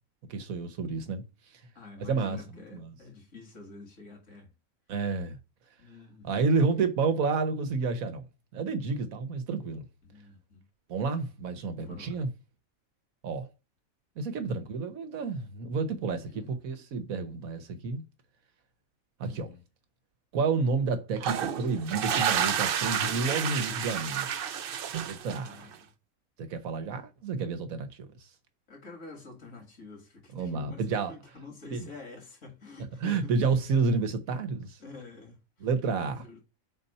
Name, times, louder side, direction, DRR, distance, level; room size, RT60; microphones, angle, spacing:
voice 1, 0.3-1.2 2.0-2.4 2.7-2.9 4.9-5.4 6.2-8.3 8.5-9.9 10.9-12.3 13.2-13.5 14.2-18.0 19.2-19.5 20.3-24.3 25.0-25.7 26.4-28.1 30.3-31.1 31.7-31.9 33.0-34.8 35.6-36.2, right 4 dB, 80° right, 1.4 m, -30 dB
voice 2, 1.8-4.5 5.8-6.5 10.0-10.7 11.8-12.2 14.4-14.7 16.3-16.6 19.2-19.6 25.3-25.9 28.7-33.4 34.8-35.7 36.0-36.4, left 3 dB, 60° left, 2.2 m, -48 dB
sound 1, 21.2-25.7, right 8 dB, 60° right, 0.6 m, -30 dB
4.2 x 4.2 x 5.4 m
omnidirectional pair, 1.4 m